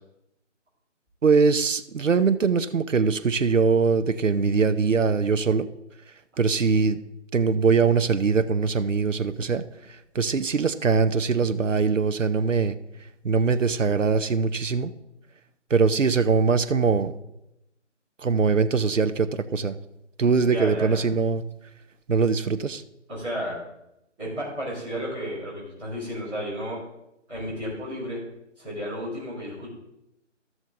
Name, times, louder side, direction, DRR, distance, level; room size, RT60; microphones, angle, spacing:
voice 1, 1.2-5.7 6.4-7.0 7.3-12.8 13.2-14.9 15.7-17.1 18.2-19.8 20.2-21.4 22.1-22.8, right 5 dB, 80° right, 12 dB, 0.8 m, -22 dB
voice 2, 20.5-21.0 23.1-23.6 24.2-26.8 27.3-28.2 28.6-29.7, equal, 5° right, -15 dB, 2.2 m, -32 dB
14.0 x 6.3 x 3.8 m, 0.86 s
figure-of-eight pair, 160°, 37 cm